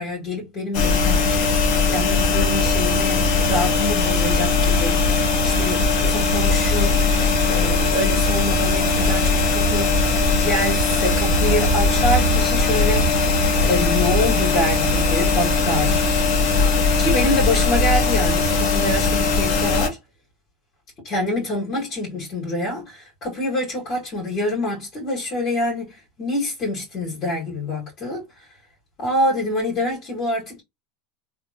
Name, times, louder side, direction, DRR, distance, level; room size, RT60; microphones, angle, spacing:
voice 1, 0.0-1.5 1.8-5.1 5.4-7.1 7.4-10.0 10.3-13.1 13.6-16.0 17.0-20.0 21.0-28.5 29.0-30.6, left 1 dB, 45° left, 2.0 m, -26 dB
sound 1, 0.7-19.9, left 3 dB, 60° left, 1.4 m, -19 dB
3.5 x 2.5 x 2.9 m
hypercardioid pair, 105°, 0 cm